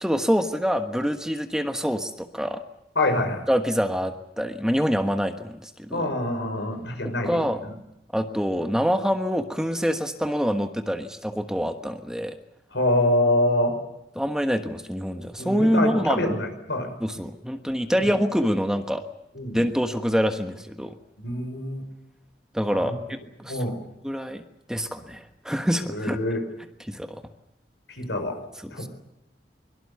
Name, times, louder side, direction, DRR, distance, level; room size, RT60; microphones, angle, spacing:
voice 1, 0.0-2.6 3.5-6.1 7.2-7.6 8.1-12.3 14.2-16.4 17.0-19.0 19.5-21.0 22.5-23.7 24.0-24.4 24.7-26.2 26.9-27.2 28.6-28.9, equal, 5° right, 7 dB, 1.3 m, -26 dB
voice 2, 3.0-3.4 5.9-7.4 12.7-13.8 15.4-16.9 19.3-19.6 21.2-21.8 22.7-22.8 23.5-23.8 25.9-26.4 27.9-28.4 28.7-28.9, left 1 dB, 90° left, 5 dB, 6.0 m, -25 dB
23.5 x 23.0 x 7.1 m, 0.84 s
head